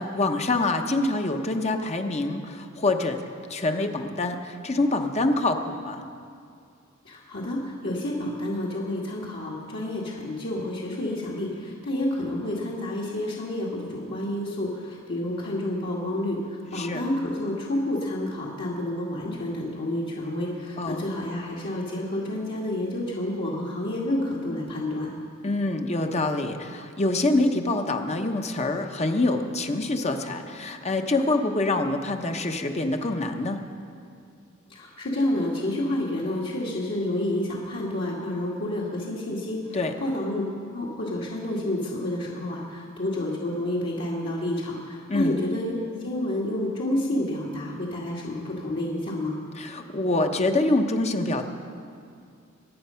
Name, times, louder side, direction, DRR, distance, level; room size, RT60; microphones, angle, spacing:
voice 1, 0.0-3.2 3.5-6.0 16.7-17.0 20.8-21.0 25.4-33.6 39.7-39.9 45.1-45.4 49.6-51.4, left 2 dB, 35° left, 5 dB, 1.0 m, -25 dB
voice 2, 7.1-25.1 34.7-39.6 40.0-40.4 40.7-45.7 46.0-49.4, left 1 dB, 60° left, -5 dB, 2.1 m, -29 dB
23.5 x 9.6 x 5.7 m, 2.4 s
head